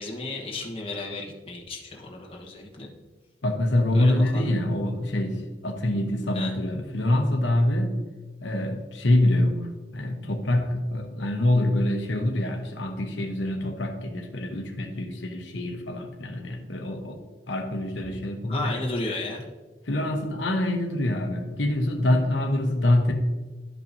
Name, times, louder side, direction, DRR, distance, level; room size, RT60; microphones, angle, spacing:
voice 1, 0.0-2.9 3.9-4.5 6.3-6.5 18.5-19.5, left 2 dB, 30° left, -1 dB, 1.2 m, -34 dB
voice 2, 3.4-8.0 8.4-17.2 17.5-18.8 19.9-23.1, left 1 dB, 85° left, 4 dB, 0.9 m, -25 dB
11.5 x 5.6 x 2.6 m, 1.3 s
head